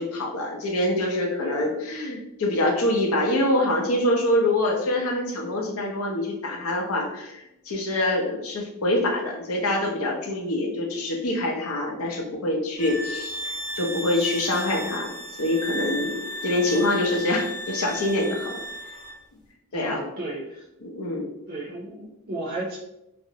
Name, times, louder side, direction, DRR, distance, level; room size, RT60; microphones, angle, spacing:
voice 1, 0.0-15.1 15.4-16.2 16.4-18.6 19.7-20.0 20.8-21.3, left 1 dB, 85° left, 1 dB, 0.6 m, -25 dB
voice 2, 1.4-1.8 19.7-20.7 21.5-22.8, right 2 dB, 45° right, -4 dB, 0.4 m, -34 dB
sound 1, 12.8-19.2, equal, 20° left, 0.7 m, -34 dB
2.5 x 2.0 x 2.7 m, 0.87 s
head